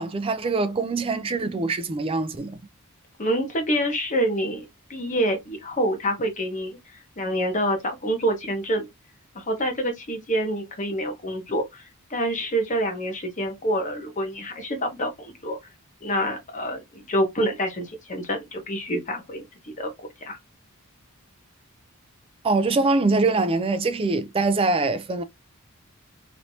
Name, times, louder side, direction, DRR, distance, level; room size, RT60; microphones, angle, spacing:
voice 1, 0.0-2.6 22.4-25.2, right 3 dB, 25° right, 0.4 m, -23 dB
voice 2, 3.2-6.8 7.2-8.9 9.3-15.6 16.0-20.4, equal, 35° left, 1.1 m, -27 dB
3.2 x 2.8 x 2.7 m
head